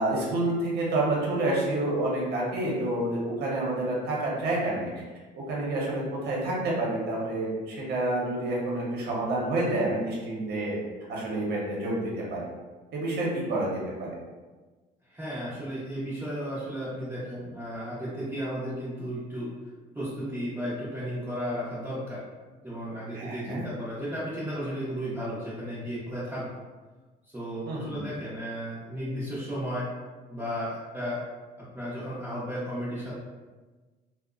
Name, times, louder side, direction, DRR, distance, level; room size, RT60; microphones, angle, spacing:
voice 1, 0.0-4.9 5.5-10.8 11.1-12.4 12.9-14.1 23.1-23.6 27.7-28.0, right 2 dB, 70° right, -4 dB, 0.8 m, -28 dB
voice 2, 15.1-19.5 19.9-22.2 22.6-26.5 27.3-29.9 30.3-31.2 31.6-33.1, equal, 10° right, -10 dB, 0.6 m, -34 dB
2.8 x 2.1 x 2.4 m, 1.3 s
cardioid pair, 110°, 17 cm